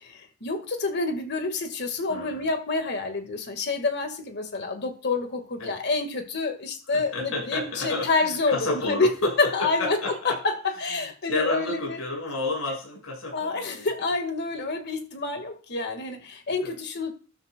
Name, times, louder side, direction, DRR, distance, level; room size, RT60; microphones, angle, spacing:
voice 1, 0.0-10.0 10.3-10.5 10.8-12.0 13.3-17.1, left 3 dB, 55° left, 6 dB, 1.9 m, -28 dB
voice 2, 2.1-2.5 5.6-5.8 6.9-10.4 11.0-13.9 16.6-16.7, left 2 dB, 80° left, -1 dB, 6.4 m, -31 dB
13.0 x 12.0 x 2.4 m, 0.39 s
head